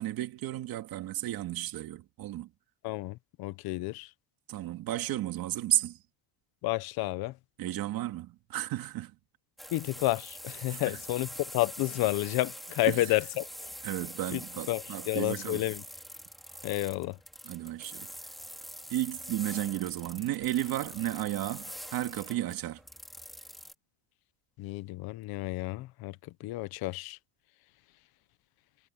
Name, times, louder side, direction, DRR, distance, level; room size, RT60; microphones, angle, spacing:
voice 1, 0.0-2.5 4.5-6.0 7.6-9.1 10.7-11.0 12.8-13.1 13.8-15.7 17.4-18.1 18.9-22.8, right 14 dB, 55° right, 2.5 m, -33 dB
voice 2, 2.8-4.1 6.6-7.3 9.7-13.5 14.3-14.4 14.7-15.8 16.6-17.2 24.6-27.2, left 19 dB, 60° left, 1.0 m, -31 dB
sound 1, 9.6-23.7, equal, ahead, 3.8 m, -45 dB
cardioid pair, 150°, 43 cm